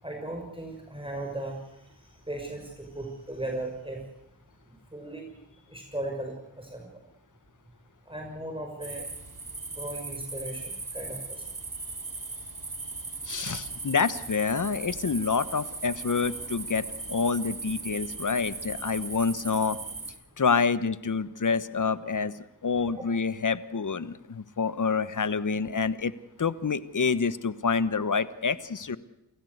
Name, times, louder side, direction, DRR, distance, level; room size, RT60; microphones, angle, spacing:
voice 1, 0.0-1.6 2.3-4.0 4.9-5.2 5.5-6.9 8.1-9.1 9.7-11.4, right 1 dB, 10° right, 2 dB, 6.0 m, -37 dB
sound 1, 8.8-20.1, right 3 dB, 50° right, 5.4 m, -38 dB
voice 2, 13.3-19.8 20.4-22.3 22.6-26.1 26.4-29.0, left 5 dB, 45° left, 14 dB, 1.3 m, -27 dB
29.0 x 15.5 x 8.1 m, 0.89 s
cardioid pair, 40°, 42 cm